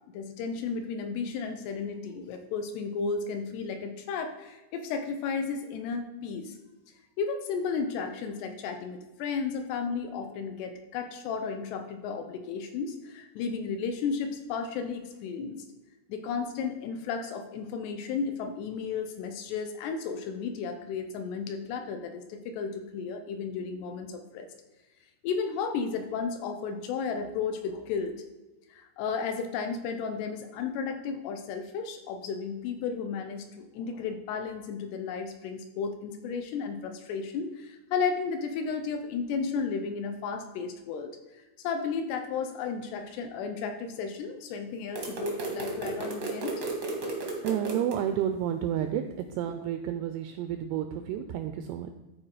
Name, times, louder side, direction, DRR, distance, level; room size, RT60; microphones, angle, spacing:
voice 1, 0.1-6.6 7.2-15.6 16.1-24.5 25.2-28.1 28.7-46.6, left 5 dB, 75° left, 6 dB, 2.7 m, -33 dB
sound 1, 44.9-48.0, right 2 dB, 70° right, 1.1 m, -34 dB
voice 2, 47.4-49.0 49.4-52.0, right 10 dB, 85° right, 8 dB, 2.3 m, -30 dB
13.5 x 4.6 x 4.9 m, 1.1 s
omnidirectional pair, 5.2 m